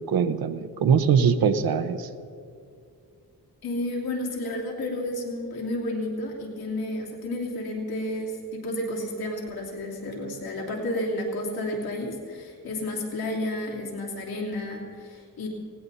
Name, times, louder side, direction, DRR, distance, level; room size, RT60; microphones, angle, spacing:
voice 1, 0.0-2.1, right 6 dB, 80° right, 8 dB, 0.9 m, -22 dB
voice 2, 3.6-15.5, left 1 dB, 85° left, -2 dB, 3.1 m, -31 dB
19.5 x 17.5 x 4.1 m, 2.4 s
wide cardioid pair, 110°, 36 cm